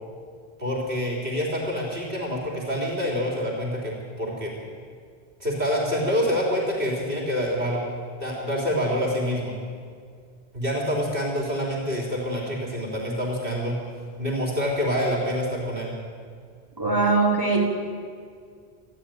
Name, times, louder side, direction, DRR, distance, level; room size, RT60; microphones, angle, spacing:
voice 1, 0.6-4.5 5.4-7.8 8.2-9.5 10.5-13.8 14.2-15.9, equal, 60° right, -2 dB, 3.8 m, -26 dB
voice 2, 16.8-17.6, right 3 dB, 20° right, -5 dB, 4.6 m, -21 dB
27.0 x 10.5 x 9.2 m, 2.1 s
omnidirectional pair, 1.1 m